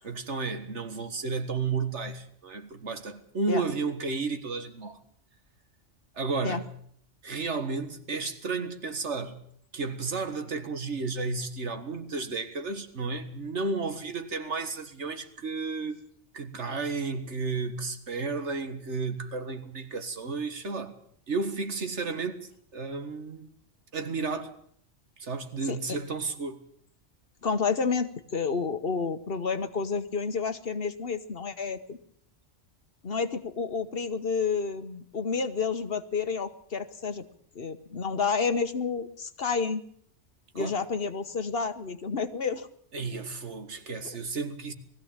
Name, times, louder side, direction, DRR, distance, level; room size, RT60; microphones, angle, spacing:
voice 1, 0.0-5.0 6.1-6.8 7.2-9.4 9.7-16.0 16.3-21.0 21.3-23.5 23.9-24.6 25.2-26.6 40.6-40.8 42.9-44.7, right 4 dB, 75° right, 2.0 m, -32 dB
voice 2, 27.4-32.0 33.0-37.2 37.5-39.8 40.5-42.7 44.0-44.2, left 5 dB, 55° left, 1.3 m, -30 dB
20.5 x 15.5 x 8.8 m
omnidirectional pair, 1.2 m